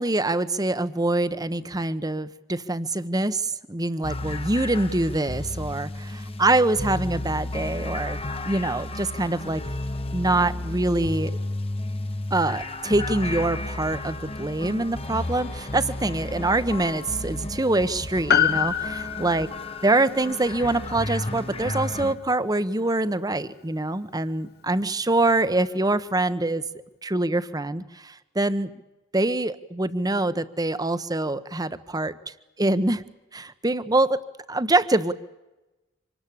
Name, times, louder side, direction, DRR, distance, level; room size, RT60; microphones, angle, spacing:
voice 1, 0.0-8.2 8.5-9.6 10.1-11.3 12.3-19.5 19.8-26.6 27.0-28.7 29.1-32.2 32.6-33.0 33.3-34.2 34.5-35.1, right 2 dB, 20° right, 13 dB, 1.0 m, -24 dB
sound 1, 4.0-22.2, left 2 dB, 30° left, 1.2 m, -33 dB
sound 2, 14.9-20.0, left 2 dB, 80° left, 2.9 m, -49 dB
Piano, 18.3-22.9 23.1-23.2, left 8 dB, 55° left, 1.1 m, -28 dB
26.0 x 19.5 x 8.5 m, 1.0 s
head